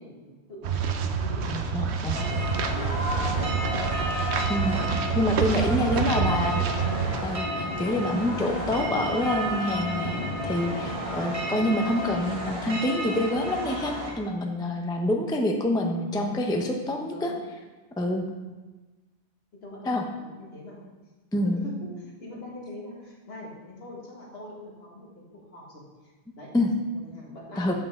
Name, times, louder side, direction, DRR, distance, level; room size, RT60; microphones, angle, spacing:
voice 1, 0.0-1.7 2.0-4.0 5.5-7.1 15.1-15.2 17.1-17.4 19.5-20.9 21.4-26.5 26.9-27.7, left 1 dB, 70° left, -4 dB, 1.8 m, -42 dB
sound 1, 0.6-7.2, right 6 dB, 90° right, 0.9 m, -28 dB
voice 2, 1.5-2.2 4.5-4.8 5.1-6.6 7.2-17.3 18.0-18.3 19.9-20.0 21.3-21.7 26.5-26.7 27.6-27.7, left 1 dB, 5° left, 2 dB, 0.4 m, -27 dB
sound 2, 2.1-14.1, equal, 35° right, 1.3 m, -31 dB
7.7 x 5.6 x 3.5 m, 1.2 s
omnidirectional pair, 1.1 m